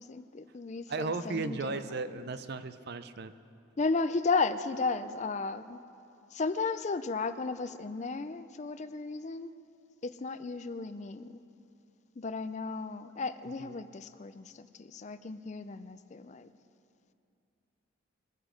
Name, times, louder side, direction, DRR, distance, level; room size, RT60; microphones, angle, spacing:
voice 1, 0.0-1.9 2.2-2.3 3.8-5.8 6.3-9.5 10.0-11.4 12.2-16.5, left 4 dB, 35° left, 12 dB, 0.4 m, -34 dB
voice 2, 0.9-3.3 13.6-13.7, right 3 dB, 50° right, 12 dB, 0.5 m, -35 dB
23.5 x 9.7 x 5.1 m, 2.6 s
head